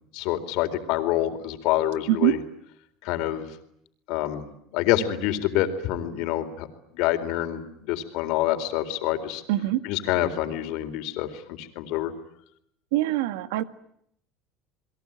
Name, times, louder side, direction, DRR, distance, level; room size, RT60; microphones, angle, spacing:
voice 1, 0.1-2.4 3.0-3.5 4.1-4.5 4.7-6.7 6.9-9.4 9.8-12.1, left 13 dB, 65° left, 8 dB, 4.1 m, -26 dB
voice 2, 9.5-9.8 12.9-13.6, right 15 dB, 90° right, 12 dB, 1.9 m, -23 dB
30.0 x 22.0 x 9.0 m, 0.73 s
supercardioid pair, 135°, 0 cm